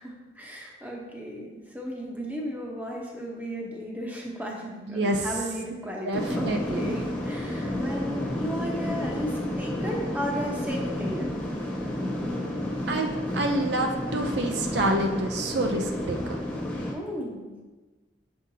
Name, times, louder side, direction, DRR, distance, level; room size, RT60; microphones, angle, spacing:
voice 1, 0.0-11.3 16.9-17.6, equal, 10° right, -2 dB, 0.8 m, -35 dB
voice 2, 4.9-5.2 6.1-6.8 12.9-13.1 13.3-16.4, right 1 dB, 65° right, 2 dB, 0.6 m, -27 dB
sound 1, 6.1-16.9, left 1 dB, 10° left, 1.0 m, -31 dB
7.4 x 5.5 x 2.7 m, 1.2 s
head